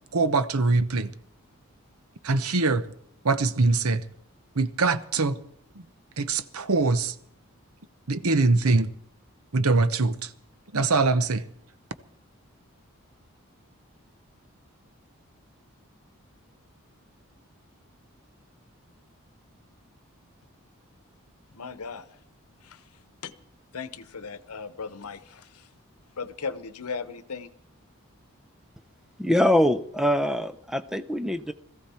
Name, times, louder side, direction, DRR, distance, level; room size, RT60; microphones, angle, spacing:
voice 1, 0.1-1.1 2.2-2.8 3.2-4.0 4.6-5.4 6.2-7.1 8.1-8.9 9.5-10.3 10.7-11.4, right 3 dB, 80° right, 0.9 m, -23 dB
voice 2, 21.5-22.1 22.6-22.8 23.2-23.3 23.7-25.5 26.2-27.5, left 5 dB, 90° left, 0.9 m, -36 dB
voice 3, 29.2-31.5, left 1 dB, ahead, 0.6 m, -23 dB
21.0 x 14.5 x 4.4 m
head